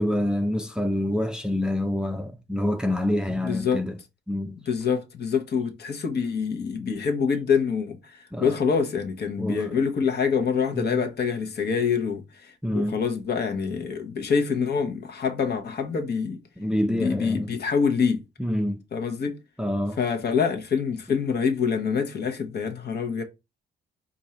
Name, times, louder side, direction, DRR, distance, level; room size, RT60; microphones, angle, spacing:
voice 1, 0.0-4.0 4.3-4.6 8.3-8.6 9.4-9.8 10.7-11.0 12.6-13.0 16.6-17.5 18.4-18.8 19.6-20.0, left 1 dB, 5° right, 0.5 m, -27 dB
voice 2, 3.4-3.8 4.7-16.4 16.9-18.2 18.9-19.3 20.0-23.2, left 6 dB, 55° left, 1.1 m, -26 dB
4.6 x 2.6 x 4.2 m
cardioid pair, 90°, 20 cm